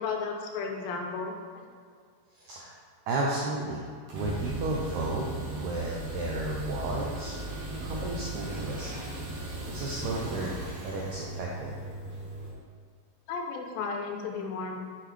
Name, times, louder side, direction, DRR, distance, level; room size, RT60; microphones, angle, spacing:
voice 1, 0.0-1.7 13.3-14.8, left 4 dB, 90° left, 2 dB, 2.4 m, -34 dB
voice 2, 2.3-2.7 3.1-7.3 7.8-9.0 9.7-10.6 10.8-11.7, right 2 dB, 85° right, -3 dB, 1.6 m, -33 dB
sound 1, 4.1-12.5, right 2 dB, 65° right, 1.8 m, -37 dB
6.6 x 5.7 x 3.2 m, 2.1 s
omnidirectional pair, 4.1 m